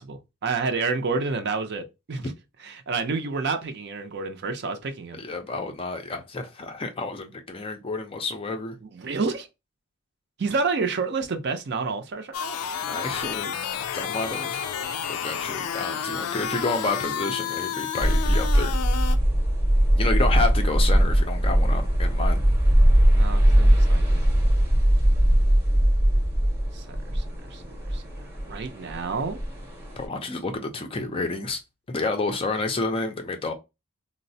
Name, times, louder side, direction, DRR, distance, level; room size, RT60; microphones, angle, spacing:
voice 1, 0.0-2.3 2.6-5.2 8.9-9.5 10.4-12.6 23.1-24.2 26.7-27.2 27.5-27.6 27.9-28.0 28.5-29.4, right 4 dB, 50° right, 0.5 m, -29 dB
voice 2, 5.1-8.8 12.9-13.5 13.9-14.6 15.1-18.7 20.0-22.4 30.0-31.6 31.9-33.5, left 3 dB, 25° left, 0.4 m, -29 dB
sound 1, 12.3-19.2, left 8 dB, 85° left, 0.4 m, -31 dB
sound 2, 18.0-30.1, equal, 10° right, 0.7 m, -20 dB
3.9 x 2.0 x 2.6 m
head